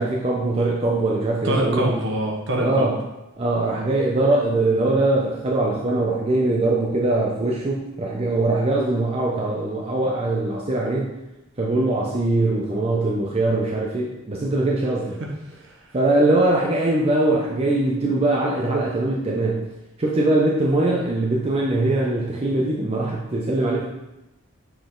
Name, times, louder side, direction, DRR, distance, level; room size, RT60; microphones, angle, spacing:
voice 1, 0.0-1.9 2.6-3.0 3.4-11.1 11.6-15.2 15.9-19.7 20.0-23.9, right 2 dB, 30° right, -3 dB, 0.6 m, -22 dB
voice 2, 1.4-2.9 15.2-15.3, right 1 dB, 60° right, 0 dB, 1.2 m, -24 dB
6.9 x 3.9 x 3.8 m, 0.96 s
head